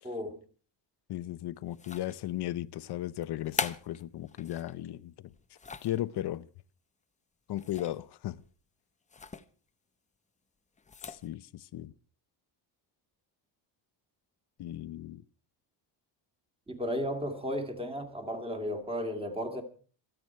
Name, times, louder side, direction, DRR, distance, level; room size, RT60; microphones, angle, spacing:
voice 1, 0.0-0.4 16.7-19.6, equal, 10° right, 2.4 m, -34 dB
voice 2, 1.1-5.3 5.8-6.5 7.5-8.4 11.0-11.9 14.6-15.2, left 13 dB, 60° left, 0.8 m, -36 dB
sound 1, 1.7-2.4 3.2-4.7 5.3-6.0 7.6-8.1 8.4-8.5 9.1-9.5 10.8-11.3, left 5 dB, 15° left, 0.7 m, -39 dB
27.0 x 9.1 x 4.5 m
cardioid pair, 160°, 46 cm